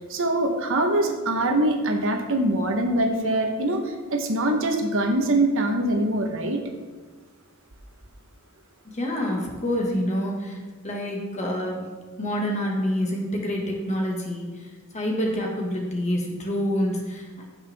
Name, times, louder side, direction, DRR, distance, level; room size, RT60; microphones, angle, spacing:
voice 1, 0.1-6.6, right 1 dB, 60° right, 4 dB, 1.2 m, -23 dB
voice 2, 8.9-10.6 10.8-11.8 12.2-17.5, equal, 30° left, 0 dB, 1.8 m, -27 dB
15.5 x 5.8 x 3.6 m, 1.4 s
head